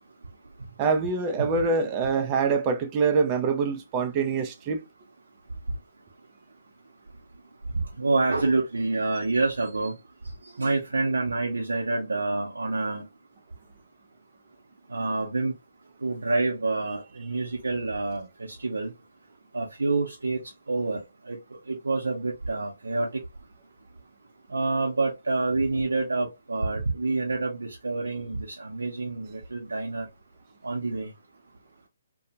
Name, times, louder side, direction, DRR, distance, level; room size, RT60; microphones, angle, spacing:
voice 1, 0.8-4.8, right 4 dB, 25° right, 0.5 m, -25 dB
voice 2, 8.0-9.9 10.6-13.0 14.9-15.5 16.0-18.3 18.6-18.9 19.5-20.4 20.7-21.0 21.3-21.4 21.7-23.1 24.5-30.1 30.6-31.1, right 3 dB, 75° right, 0.6 m, -27 dB
2.6 x 2.3 x 2.7 m
figure-of-eight pair, 130°, 0 cm